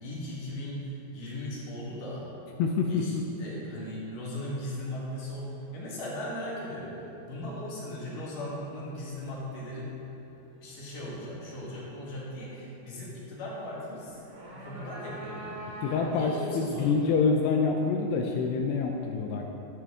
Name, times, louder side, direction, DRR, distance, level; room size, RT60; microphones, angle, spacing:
voice 1, 0.0-2.3 2.9-9.9 10.6-14.2 14.5-15.6 16.1-17.2, left 1 dB, 55° left, -5 dB, 2.8 m, -38 dB
voice 2, 2.6-3.2 15.8-19.4, left 5 dB, 80° left, 2 dB, 2.6 m, -26 dB
sound 1, 14.1-16.4, right 1 dB, 65° right, 4.1 m, -42 dB
12.5 x 8.9 x 3.6 m, 3.0 s
omnidirectional pair, 5.1 m